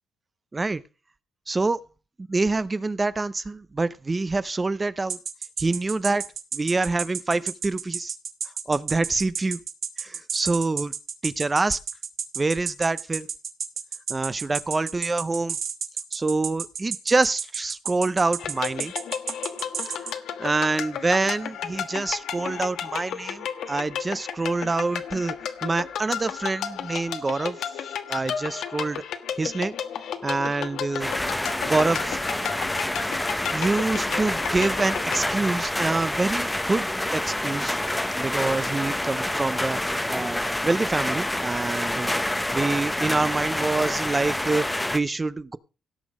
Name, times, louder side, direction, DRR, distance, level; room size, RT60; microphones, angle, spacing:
voice 1, 1.5-1.8 2.3-5.2 5.6-6.2 6.5-8.1 8.7-9.6 10.0-10.9 11.2-11.8 12.4-13.3 14.1-15.6 16.1-18.9 20.0-20.1 20.4-25.3 25.6-27.6 28.1-29.0 29.4-29.8 30.2-31.1 31.6-32.2 33.5-36.9 37.1-37.8 38.2-42.1 42.5-45.6, right 3 dB, 25° right, 15 dB, 0.7 m, -26 dB
sound 1, 5.1-20.1, right 7 dB, 55° right, 1.7 m, -31 dB
sound 2, 18.4-35.2, left 8 dB, 75° left, 1.3 m, -33 dB
sound 3, 31.0-45.0, left 1 dB, 10° left, 0.8 m, -27 dB
17.5 x 6.2 x 4.9 m, 0.32 s
cardioid pair, 90°, 0 cm